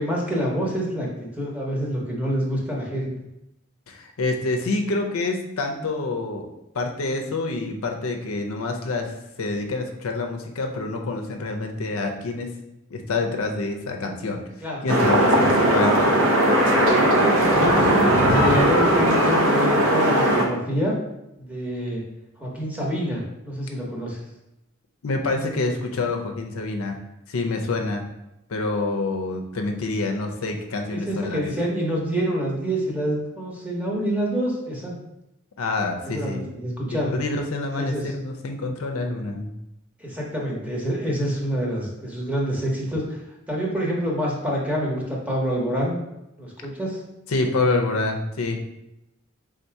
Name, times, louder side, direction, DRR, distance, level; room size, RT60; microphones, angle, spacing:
voice 1, 0.0-3.1 14.6-14.9 17.2-20.9 21.4-22.0 22.4-24.2 30.9-34.9 36.1-37.1 37.8-38.0 40.0-43.2 43.5-46.0 46.4-47.0, equal, 5° right, -3 dB, 0.9 m, -27 dB
voice 2, 3.9-6.5 6.7-9.1 9.4-12.5 12.9-14.4 14.8-16.0 25.0-27.0 27.3-28.1 28.5-31.4 35.6-36.4 36.9-39.5 47.3-48.6, left 3 dB, 75° left, 4 dB, 0.5 m, -27 dB
sound 1, 14.9-20.4, right 1 dB, 65° right, 0.7 m, -18 dB
3.7 x 2.7 x 4.5 m, 0.88 s
head